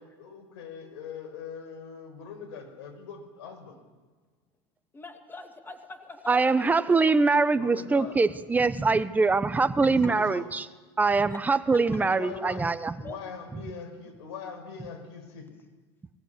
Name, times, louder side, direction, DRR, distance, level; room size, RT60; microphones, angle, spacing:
voice 1, 0.0-3.8 7.5-8.2 10.0-10.5 12.0-12.6 13.0-15.6, left 6 dB, 80° left, 5 dB, 5.8 m, -41 dB
voice 2, 4.9-6.8 8.5-8.8 11.3-11.4 11.9-12.0 13.0-13.2, left 3 dB, 15° left, 5 dB, 2.5 m, -44 dB
voice 3, 6.3-10.6 11.0-12.9 13.5-13.6, right 4 dB, 10° right, 13 dB, 0.9 m, -23 dB
20.5 x 16.0 x 8.2 m, 1.3 s
supercardioid pair, 120°, 14 cm